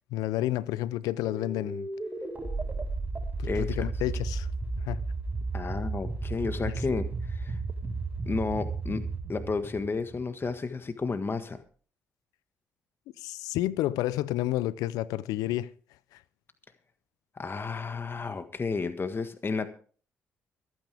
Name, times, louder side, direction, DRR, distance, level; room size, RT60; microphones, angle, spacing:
voice 1, 0.0-1.9 3.4-4.5 4.8-5.0 13.2-15.7 16.1-16.2, left 15 dB, 80° left, 0.6 m, -30 dB
sound 1, 1.2-10.6, right 3 dB, 25° right, 6.2 m, -34 dB
voice 2, 3.4-3.9 5.5-7.6 8.3-11.6 17.4-19.7, left 4 dB, 35° left, 1.6 m, -32 dB
24.5 x 9.4 x 3.5 m
hypercardioid pair, 50°, 6 cm